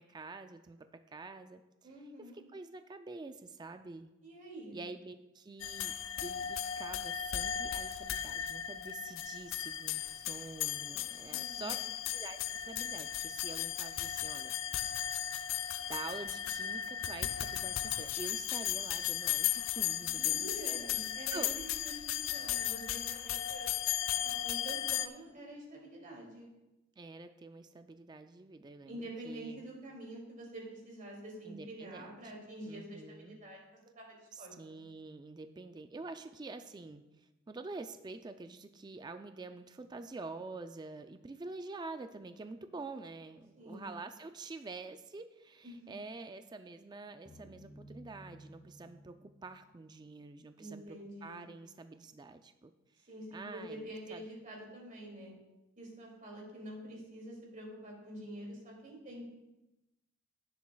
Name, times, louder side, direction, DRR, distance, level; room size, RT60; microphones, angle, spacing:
voice 1, 0.0-1.6 2.2-4.1 4.7-5.9 6.2-11.8 12.1-14.5 15.9-20.8 21.3-21.6 27.0-29.6 31.5-32.2 32.7-33.4 34.3-51.0 51.2-52.7 53.3-54.2, right 3 dB, 20° right, 8 dB, 0.3 m, -47 dB
voice 2, 1.8-2.4 4.2-4.8 11.3-11.8 20.1-23.7 24.2-26.5 28.9-33.6 33.9-34.8 43.5-43.9 45.6-45.9 50.6-51.4 53.1-55.3 55.8-59.2, right 1 dB, 40° right, -2 dB, 2.5 m, -47 dB
sound 1, 5.6-25.1, left 11 dB, 65° left, 0.4 m, -36 dB
sound 2, 47.3-50.5, equal, 15° left, 0.9 m, -56 dB
16.0 x 7.2 x 2.3 m, 0.98 s
head